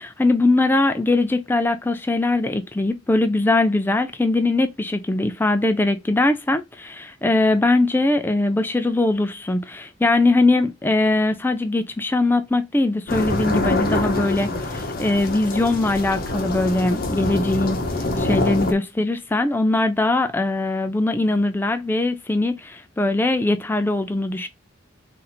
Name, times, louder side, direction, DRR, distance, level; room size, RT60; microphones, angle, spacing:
voice 1, 0.0-17.8 18.2-24.5, left 2 dB, 10° left, 0.3 m, -21 dB
sound 1, 13.1-18.7, left 2 dB, 50° left, 0.8 m, -25 dB
4.0 x 2.6 x 4.2 m
head